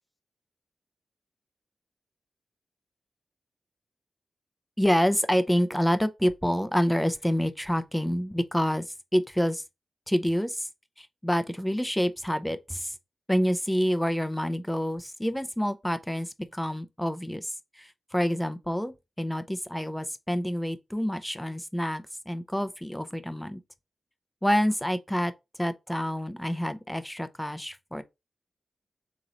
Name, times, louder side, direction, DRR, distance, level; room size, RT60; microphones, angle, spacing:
voice 1, 4.8-9.6 10.1-10.7 11.0-13.0 13.3-23.6 24.4-25.3 25.6-28.0, equal, 5° left, 0.6 m, -27 dB
3.8 x 3.0 x 3.9 m
cardioid pair, 45°, 0 cm